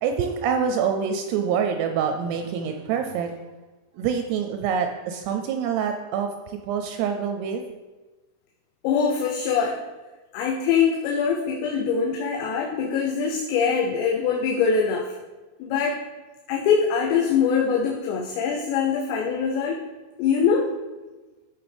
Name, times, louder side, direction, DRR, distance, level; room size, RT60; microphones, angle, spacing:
voice 1, 0.0-3.3 3.9-7.6, right 7 dB, 80° right, 5 dB, 2.5 m, -26 dB
voice 2, 8.8-9.8 10.3-15.2 15.6-16.0 16.5-19.8 20.2-20.7, left 6 dB, 80° left, 0 dB, 2.9 m, -23 dB
13.0 x 5.6 x 3.4 m, 1.2 s
omnidirectional pair, 5.1 m